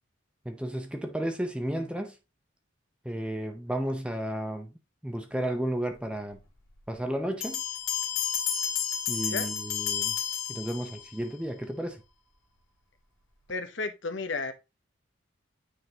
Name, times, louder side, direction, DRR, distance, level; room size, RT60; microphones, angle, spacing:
voice 1, 0.5-2.1 3.0-4.7 5.0-6.4 6.9-7.6 9.1-10.1 10.5-12.0, right 1 dB, 5° right, 0.5 m, -33 dB
Bell, 7.4-11.2, left 9 dB, 80° left, 2.0 m, -31 dB
voice 2, 13.5-14.5, left 3 dB, 60° left, 0.7 m, -33 dB
9.0 x 3.8 x 2.8 m
head